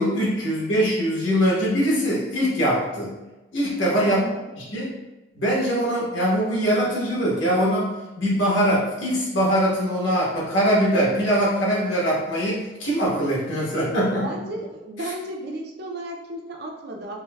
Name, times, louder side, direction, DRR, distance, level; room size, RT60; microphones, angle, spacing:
voice 1, 0.0-3.1 3.5-4.2 4.6-4.9 5.3-7.9 8.2-14.2, equal, 75° left, -5 dB, 1.1 m, -22 dB
voice 2, 4.0-4.5 14.1-17.2, right 1 dB, 55° right, 1 dB, 0.4 m, -34 dB
4.5 x 2.1 x 2.2 m, 1.1 s
head